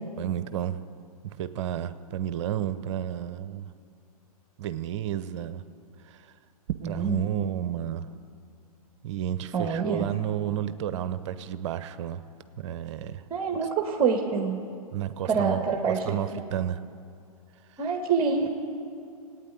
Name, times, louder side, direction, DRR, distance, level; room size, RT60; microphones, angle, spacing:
voice 1, 0.2-0.8 1.2-3.7 4.6-5.6 6.0-6.3 6.8-8.1 9.0-12.2 12.6-13.2 14.9-16.8 17.7-17.8, right 11 dB, 50° right, 13 dB, 0.7 m, -31 dB
voice 2, 6.8-7.2 9.5-10.1 13.3-14.6 15.3-16.0 16.3-16.4 17.8-18.5, right 5 dB, 25° right, 2 dB, 1.3 m, -26 dB
16.5 x 9.2 x 9.4 m, 2.4 s
hypercardioid pair, 115°, 19 cm